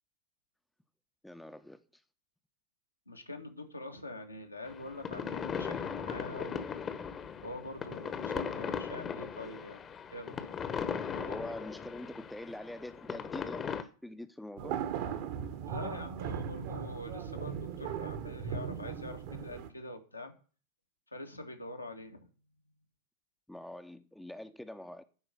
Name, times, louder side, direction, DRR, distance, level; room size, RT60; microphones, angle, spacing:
voice 1, 1.2-2.0 11.2-14.8 23.5-25.1, left 1 dB, 5° left, 0.7 m, -45 dB
voice 2, 3.1-6.7 7.4-9.8 10.1-10.3 11.1-11.4 15.7-20.3 21.1-22.3, left 1 dB, 85° left, 1.7 m, -44 dB
sound 1, 4.6-13.8, left 7 dB, 25° left, 1.0 m, -38 dB
sound 2, 14.6-19.7, right 8 dB, 50° right, 1.3 m, -38 dB
11.0 x 4.9 x 7.8 m
figure-of-eight pair, 90°, 0 cm